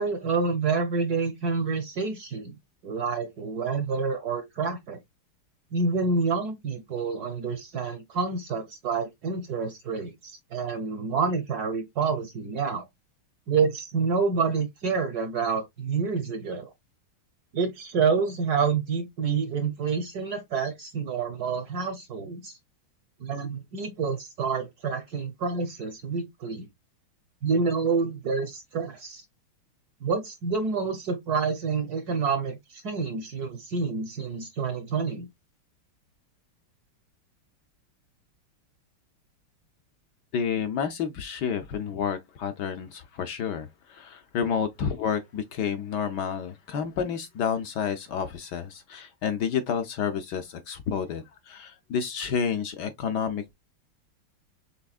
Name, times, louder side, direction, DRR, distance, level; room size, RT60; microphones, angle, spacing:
voice 1, 0.0-2.6 2.8-5.0 5.7-12.9 13.5-16.7 17.5-22.6 23.2-26.7 27.4-29.2 30.0-35.3, right 5 dB, 65° right, 1.0 m, -28 dB
voice 2, 40.3-53.5, left 7 dB, 75° left, 1.0 m, -30 dB
5.8 x 3.4 x 2.3 m
omnidirectional pair, 2.3 m